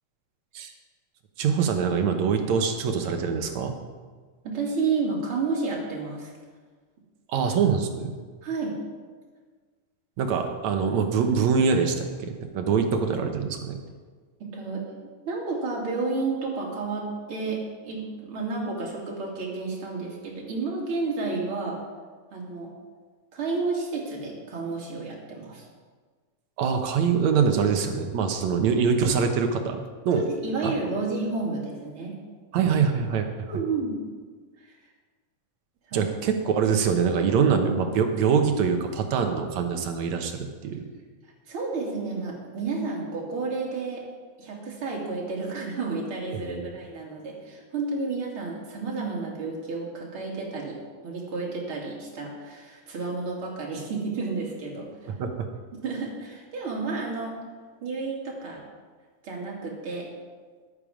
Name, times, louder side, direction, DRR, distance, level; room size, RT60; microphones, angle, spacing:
voice 1, 1.4-3.8 7.3-8.1 10.2-13.8 26.6-30.2 30.6-30.7 32.5-33.5 35.9-40.9 46.4-46.7 55.2-55.3, right 6 dB, 65° right, 5 dB, 2.2 m, -24 dB
voice 2, 4.4-6.3 8.4-8.8 12.7-12.8 14.4-14.8 15.2-21.8 22.3-22.7 23.3-25.6 30.1-32.2 33.5-33.9 34.6-34.8 35.9-36.0 41.5-44.0 44.4-55.1 55.7-57.4 57.8-58.6 59.2-60.1, right 3 dB, 40° right, -3 dB, 3.3 m, -31 dB
14.0 x 11.0 x 5.1 m, 1.5 s
omnidirectional pair, 3.7 m